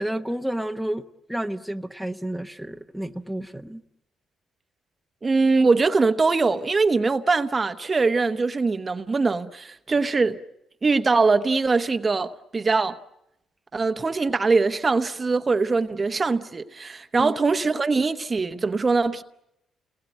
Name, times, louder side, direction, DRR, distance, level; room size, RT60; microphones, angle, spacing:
voice 1, 0.0-3.8 17.2-17.3, right 1 dB, ahead, 1.0 m, -30 dB
voice 2, 5.2-10.4 10.8-13.0 13.7-19.2, right 4 dB, 30° right, 0.9 m, -22 dB
29.5 x 20.0 x 9.0 m
cardioid pair, 90°, 0 cm